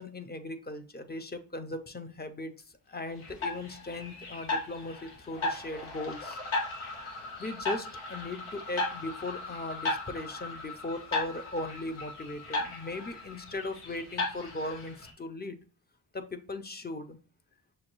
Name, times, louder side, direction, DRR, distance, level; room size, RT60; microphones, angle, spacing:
voice 1, 0.0-2.5 2.9-6.4 7.4-15.6 16.1-17.2, left 2 dB, 20° left, 8 dB, 0.4 m, -38 dB
sound 1, 3.2-15.1, left 2 dB, 85° left, 1.1 m, -36 dB
6.2 x 2.3 x 2.9 m, 0.40 s
wide cardioid pair, 90°, 48 cm